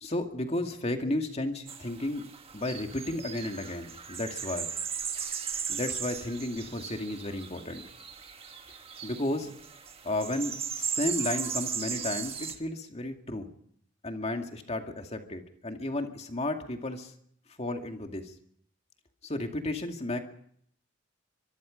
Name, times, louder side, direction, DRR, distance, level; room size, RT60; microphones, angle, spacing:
voice 1, 0.0-2.2 2.5-4.7 5.7-7.8 9.0-9.5 10.0-13.5 14.0-17.1 17.6-18.3 19.2-20.2, left 1 dB, 35° left, 4 dB, 2.3 m, -33 dB
sound 1, 1.7-12.6, right 7 dB, 30° right, 1.6 m, -37 dB
24.5 x 22.5 x 5.3 m, 0.67 s
head